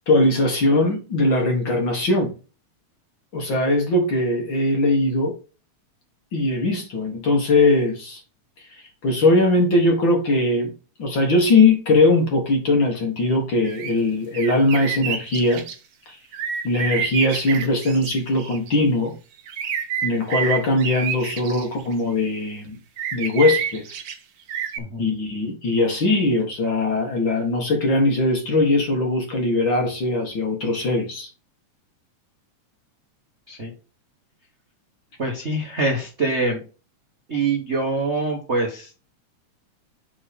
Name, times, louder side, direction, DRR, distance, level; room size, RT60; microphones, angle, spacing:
voice 1, 0.1-2.3 3.3-5.3 6.3-8.2 8.7-10.7 11.0-15.6 16.1-16.2 16.6-19.2 20.0-22.8 23.1-23.8 25.0-31.3, left 2 dB, 50° left, 1.8 m, -20 dB
sound 1, 13.6-13.9 14.3-15.8 16.3-18.7 19.5-21.9 23.0-24.2 24.5-24.8, right 8 dB, 80° right, 1.1 m, -28 dB
voice 2, 35.2-36.6 37.3-39.0, right 2 dB, 55° right, 0.7 m, -24 dB
7.1 x 3.7 x 5.1 m
omnidirectional pair, 3.5 m